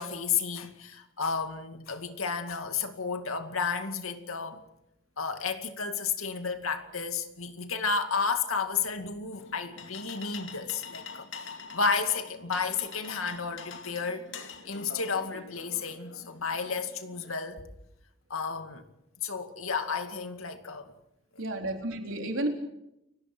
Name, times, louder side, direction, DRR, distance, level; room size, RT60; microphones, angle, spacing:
voice 1, 0.0-4.6 5.2-11.3 11.7-14.3 14.7-17.6 18.3-18.9 19.2-20.9, left 5 dB, 90° left, 7 dB, 2.3 m, -32 dB
sound 1, 9.3-17.3, left 5 dB, 65° left, 2.4 m, -45 dB
voice 2, 21.4-22.5, right 1 dB, 75° right, 3 dB, 3.9 m, -31 dB
29.5 x 18.0 x 6.2 m, 0.84 s
head